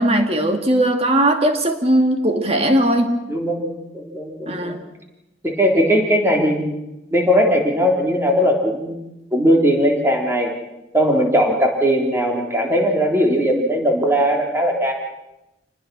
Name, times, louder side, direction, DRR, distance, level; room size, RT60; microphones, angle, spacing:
voice 1, 0.0-3.1 4.5-4.8, right 1 dB, 35° right, 5 dB, 2.3 m, -18 dB
voice 2, 3.3-4.7 5.4-6.8 7.1-9.0 9.3-10.5 10.9-14.9, equal, 15° right, 1 dB, 3.5 m, -18 dB
27.0 x 20.0 x 6.2 m, 0.94 s
head